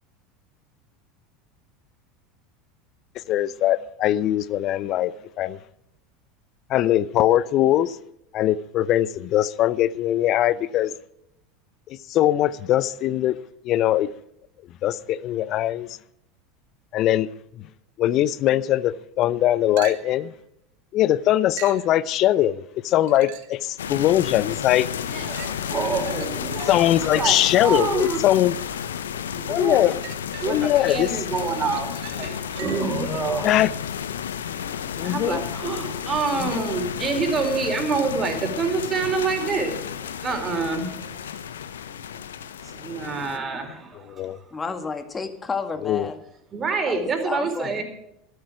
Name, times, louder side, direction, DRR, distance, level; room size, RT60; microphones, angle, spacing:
voice 1, 3.3-5.6 6.7-8.0 8.3-10.9 11.9-13.4 13.6-14.1 14.8-16.0 16.9-17.3 17.6-17.7 18.0-20.3 20.9-24.9 26.7-28.6 29.5-30.0 30.5-31.1 33.4-33.7 35.0-35.4 36.4-36.5 44.1-44.4 45.8-46.1, left 13 dB, 50° left, 0.7 m, -21 dB
Glass Bottle under Water, 19.8-20.3 21.6-21.9 22.9-23.6 24.2-24.3 25.3-28.3 29.7-30.9 31.3-33.0 36.8-36.9, right 12 dB, 65° right, 1.4 m, -42 dB
sound 1, 23.8-43.4, left 8 dB, 80° left, 0.9 m, -32 dB
voice 2, 25.0-28.2 29.4-29.9 30.4-33.7 35.0-41.2 42.6-44.4 46.5-47.8, right 4 dB, 30° right, 4.1 m, -27 dB
voice 3, 44.5-46.2 46.9-47.8, left 4 dB, 20° left, 2.0 m, -31 dB
13.0 x 12.5 x 4.8 m
hypercardioid pair, 80°, 0 cm